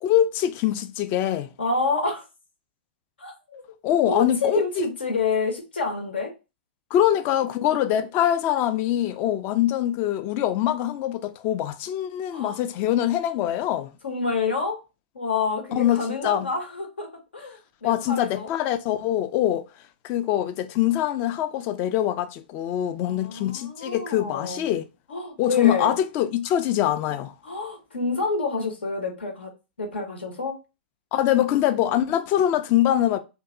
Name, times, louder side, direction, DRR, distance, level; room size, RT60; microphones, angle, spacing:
voice 1, 0.0-1.5 3.8-4.9 6.9-13.9 15.8-16.5 17.8-19.7 20.0-24.9 25.4-27.3 31.1-33.2, left 11 dB, 40° left, 0.4 m, -23 dB
voice 2, 1.6-2.2 3.2-3.6 4.1-6.3 12.3-12.6 14.0-14.8 15.1-18.5 23.0-24.6 25.1-25.9 27.4-29.5 29.8-30.6, left 3 dB, 85° left, 0.9 m, -28 dB
2.6 x 2.3 x 2.5 m
hypercardioid pair, 115°, 6 cm